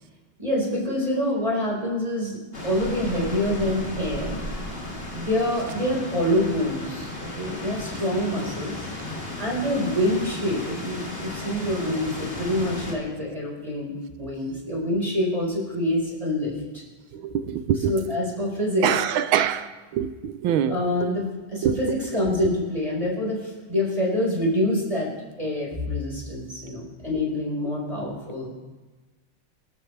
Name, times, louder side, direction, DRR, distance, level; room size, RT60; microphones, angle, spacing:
voice 1, 0.4-2.4 2.6-4.4 5.1-8.7 9.4-16.5 17.8-18.9 20.7-25.1 25.4-28.5, left 1 dB, 15° right, -3 dB, 4.6 m, -26 dB
sound 1, 2.5-12.9, left 1 dB, 30° left, 2.5 m, -34 dB
voice 2, 17.1-17.9 18.8-20.8 21.6-21.8, right 9 dB, 75° right, 12 dB, 1.5 m, -24 dB
25.5 x 12.5 x 3.3 m, 1.3 s
omnidirectional pair, 2.3 m